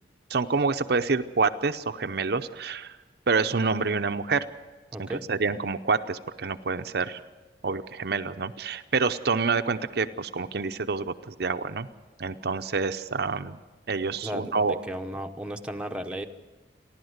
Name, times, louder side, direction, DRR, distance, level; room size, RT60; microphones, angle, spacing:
voice 1, 0.3-2.9 3.3-4.5 5.0-7.2 7.6-11.9 12.2-13.6 13.9-14.8, right 4 dB, 60° right, 8 dB, 0.7 m, -27 dB
voice 2, 4.9-5.3 14.2-16.3, right 1 dB, 5° right, 3 dB, 1.0 m, -35 dB
30.0 x 11.5 x 8.1 m, 1.2 s
head